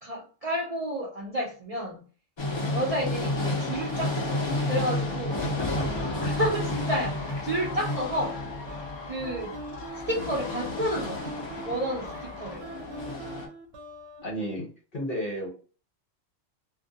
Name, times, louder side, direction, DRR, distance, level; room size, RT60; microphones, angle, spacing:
voice 1, 0.0-2.0 2.7-5.4 6.3-8.4 9.1-9.5 10.1-11.3 11.6-12.7, right 1 dB, 50° right, -3 dB, 0.4 m, -31 dB
sound 1, 2.4-13.5, left 2 dB, 35° left, 0.5 m, -32 dB
sound 2, 4.1-14.2, right 2 dB, 70° right, 0.8 m, -42 dB
sound 3, 5.6-12.6, left 4 dB, 70° left, 0.8 m, -44 dB
voice 2, 5.7-6.3 14.2-15.5, equal, 50° left, -1 dB, 1.0 m, -33 dB
2.2 x 2.2 x 2.6 m, 0.37 s
omnidirectional pair, 1.2 m